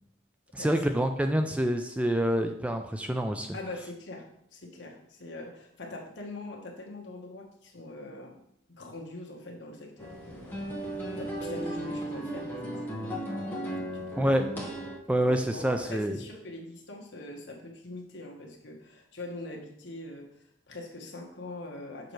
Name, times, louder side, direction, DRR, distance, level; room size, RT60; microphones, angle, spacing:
voice 1, 0.5-3.5 14.2-14.4 15.1-16.2, right 1 dB, 5° right, 6 dB, 0.3 m, -27 dB
voice 2, 3.5-4.2 4.5-8.4 8.7-10.6 11.2-14.4 15.1-20.3 20.7-22.1, left 2 dB, 65° left, 0 dB, 1.2 m, -43 dB
sound 1, 10.0-15.0, right 1 dB, 10° left, 1.2 m, -35 dB
6.6 x 5.4 x 3.1 m, 0.74 s
head